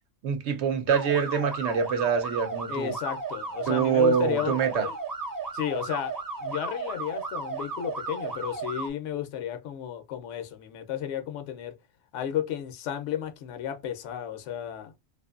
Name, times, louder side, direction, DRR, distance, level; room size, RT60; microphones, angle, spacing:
voice 1, 0.2-2.9 3.7-4.9, right 6 dB, 65° right, 0.9 m, -25 dB
sound 1, 0.9-8.9, right 4 dB, 30° right, 0.4 m, -34 dB
voice 2, 2.7-4.9 5.5-6.1 6.4-11.8 12.1-15.0, left 10 dB, 70° left, 0.9 m, -33 dB
2.6 x 2.5 x 2.4 m
omnidirectional pair, 1.4 m